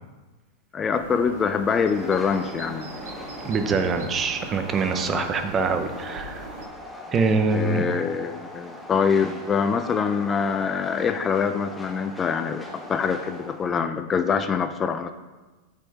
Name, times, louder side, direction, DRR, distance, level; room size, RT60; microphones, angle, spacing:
voice 1, 0.7-2.9 5.1-5.3 7.5-15.1, left 6 dB, 25° left, 9 dB, 0.4 m, -25 dB
sound 1, 0.9-6.7, right 3 dB, 85° right, 0.9 m, -40 dB
Train, 1.8-13.7, left 1 dB, 5° left, 1.0 m, -41 dB
voice 2, 3.4-6.4 7.1-7.8, right 4 dB, 25° right, 7 dB, 0.7 m, -24 dB
7.9 x 4.4 x 4.6 m, 1.2 s
supercardioid pair, 130°, 0 cm